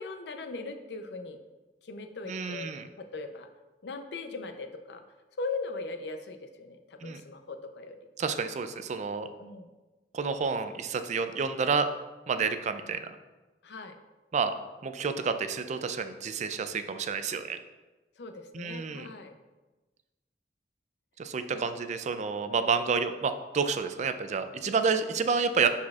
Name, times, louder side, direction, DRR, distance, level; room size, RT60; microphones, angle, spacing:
voice 1, 0.0-1.4 1.8-2.7 3.0-3.5 3.8-5.0 5.4-8.0 9.4-9.7 13.6-14.0 18.2-19.4 21.5-21.6, left 3 dB, 70° left, 7 dB, 0.6 m, -39 dB
voice 2, 2.3-2.8 7.0-7.2 8.2-9.3 10.1-11.9 12.3-13.2 14.3-14.5 14.8-17.6 18.5-19.1 21.2-25.7, right 5 dB, 40° right, 9 dB, 0.4 m, -29 dB
11.0 x 4.3 x 2.4 m, 1.2 s
head